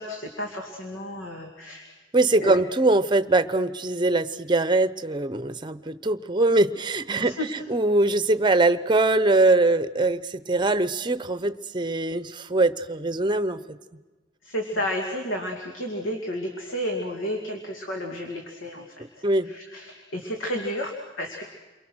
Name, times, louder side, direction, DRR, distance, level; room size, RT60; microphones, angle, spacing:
voice 1, 0.0-1.9 2.4-2.6 7.2-7.5 14.4-19.0 19.4-21.4, equal, 90° left, 2 dB, 2.3 m, -32 dB
voice 2, 2.1-13.6 19.0-19.5, right 2 dB, 25° right, 13 dB, 0.7 m, -22 dB
29.0 x 23.0 x 6.3 m, 1.3 s
head